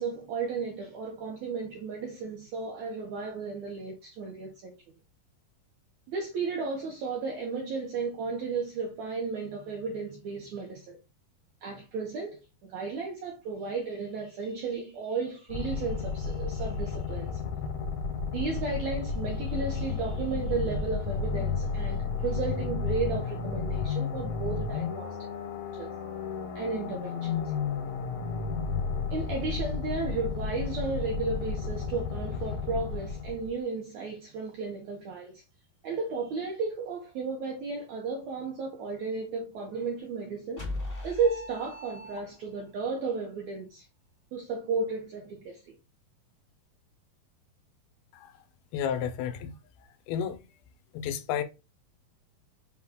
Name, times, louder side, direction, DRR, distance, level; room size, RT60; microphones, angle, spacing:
voice 1, 0.0-4.8 6.1-11.0 11.6-17.8 18.3-25.2 25.7-26.0 26.5-27.5 29.1-35.4 35.8-40.6 41.0-43.9 44.3-45.7, right 4 dB, 80° right, 1.6 m, -34 dB
sound 1, 15.5-33.6, left 5 dB, 75° left, 1.7 m, -32 dB
sound 2, 40.6-42.7, left 1 dB, 40° left, 0.8 m, -38 dB
voice 2, 48.7-49.6 50.1-50.4 50.9-51.4, left 8 dB, 90° left, 2.6 m, -31 dB
6.3 x 2.3 x 3.5 m
omnidirectional pair, 4.3 m